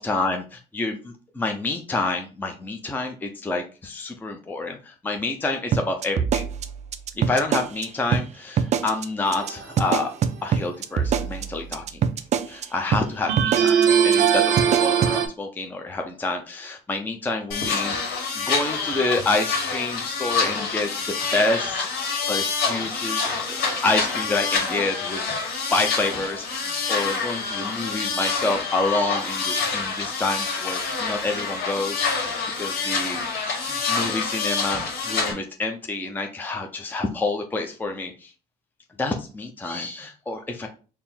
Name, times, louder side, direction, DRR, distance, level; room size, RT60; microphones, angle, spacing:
voice 1, 0.0-6.4 7.3-10.1 10.4-12.0 12.5-20.9 21.3-21.9 22.3-25.2 25.7-32.1 32.6-38.3 39.0-40.7, left 3 dB, 10° left, 3 dB, 0.5 m, -28 dB
sound 1, 5.7-7.8 8.1-8.2 8.6-9.0 9.3-9.5 9.8-12.6 12.9-13.0 13.4-13.8 14.1-14.3 14.6-15.1, right 7 dB, 45° right, 0.4 m, -23 dB
sound 2, 9.3-9.9 13.3-15.3, right 8 dB, 85° right, 0.7 m, -20 dB
sound 3, 17.5-35.3, left 4 dB, 75° left, 1.4 m, -27 dB
4.3 x 2.0 x 3.6 m, 0.35 s
cardioid pair, 110°, 17 cm